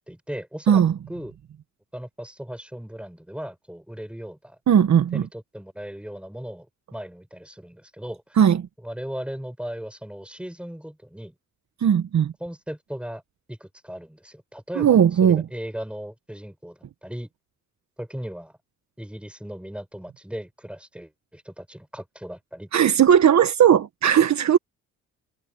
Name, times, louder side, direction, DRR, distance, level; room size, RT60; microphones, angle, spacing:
voice 1, 0.0-0.8 1.1-1.3 1.9-4.6 5.1-6.7 6.9-8.4 8.8-11.3 12.4-13.2 13.5-17.3 18.0-18.5 19.0-22.7, equal, 5° right, 6.1 m, -37 dB
voice 2, 4.7-5.3 8.4-8.7 11.8-12.3 14.7-15.4 22.7-24.6, right 9 dB, 55° right, 1.5 m, -17 dB
supercardioid pair, 65°, 32 cm